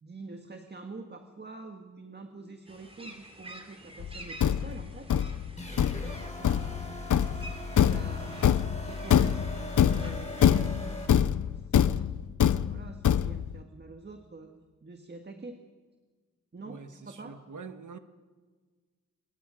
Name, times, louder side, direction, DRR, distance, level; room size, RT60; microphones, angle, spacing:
voice 1, 0.0-5.2 5.7-6.8 7.3-7.4 7.9-9.5 9.9-14.5 14.8-15.6 16.5-17.4, right 3 dB, 35° right, 5 dB, 1.7 m, -47 dB
sound 1, 2.7-11.3, right 1 dB, 20° right, 3.3 m, -49 dB
Thump thud, 4.0-13.6, left 9 dB, 85° left, 0.7 m, -25 dB
sound 2, 5.6-11.1, left 1 dB, 25° left, 4.8 m, -39 dB
voice 2, 16.6-18.0, right 5 dB, 80° right, 8 dB, 1.5 m, -45 dB
27.0 x 22.5 x 5.1 m, 1.4 s
wide cardioid pair, 125°, 30 cm